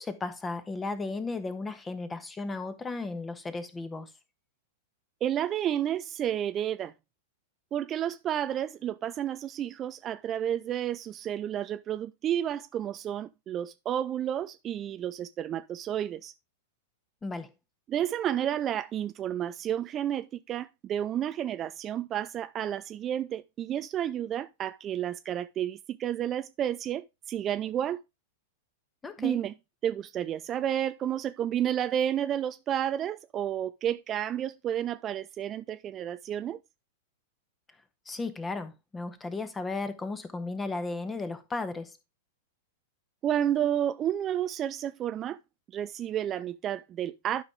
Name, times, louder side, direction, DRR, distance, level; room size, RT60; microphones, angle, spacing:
voice 1, 0.0-4.1 17.2-17.5 29.0-29.4 38.1-41.9, left 3 dB, 15° left, 1.3 m, -35 dB
voice 2, 5.2-6.9 7.7-16.3 17.9-28.0 29.2-29.5 29.8-36.6 43.2-45.4 45.7-47.4, right 10 dB, 30° right, 0.4 m, -31 dB
12.0 x 5.3 x 3.6 m
figure-of-eight pair, 95°, 0 cm